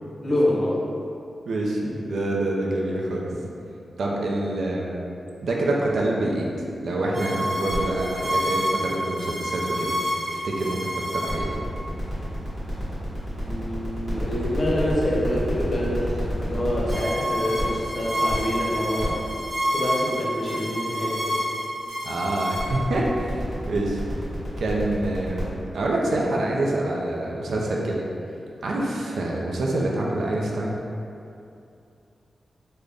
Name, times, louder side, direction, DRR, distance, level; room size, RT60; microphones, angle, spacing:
voice 1, 0.2-0.8 13.4-16.1 16.4-19.2 19.7-21.4, left 1 dB, 35° left, -6 dB, 0.7 m, -26 dB
voice 2, 1.5-3.3 4.0-4.9 5.4-10.0 10.3-11.5 22.1-23.4 23.7-24.0 24.6-28.1 28.6-30.8, right 1 dB, 75° right, -2 dB, 0.4 m, -26 dB
sound 1, 7.1-25.4, equal, 40° right, 1.1 m, -28 dB
3.8 x 2.1 x 3.4 m, 2.6 s
wide cardioid pair, 165°, 0 cm